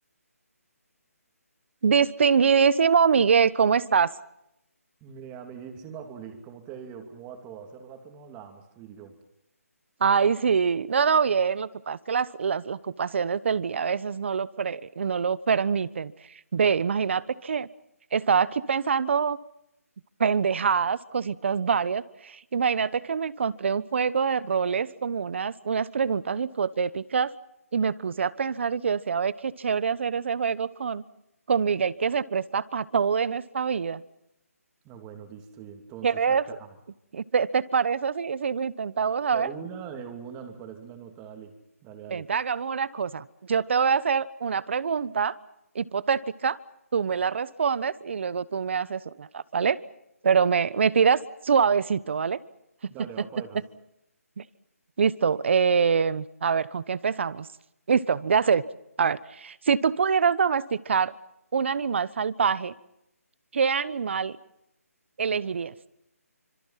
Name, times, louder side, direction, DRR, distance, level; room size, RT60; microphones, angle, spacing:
voice 1, 1.8-4.1 10.0-16.1 16.5-17.7 18.1-19.4 20.2-27.3 27.7-31.0 31.5-34.0 36.0-36.4 37.1-39.5 42.1-45.4 45.7-46.6 46.9-49.8 50.2-52.4 52.8-52.9 54.4-54.5 55.0-57.5 57.9-58.6 59.0-61.1 61.5-62.7 63.5-64.4 65.2-65.7, right 6 dB, 50° right, 18 dB, 1.1 m, -25 dB
voice 2, 5.0-9.2 34.8-36.8 39.3-42.3 52.9-53.6, right 7 dB, 15° right, 5 dB, 2.8 m, -42 dB
27.0 x 26.0 x 5.8 m, 0.83 s
hypercardioid pair, 160°, 8 cm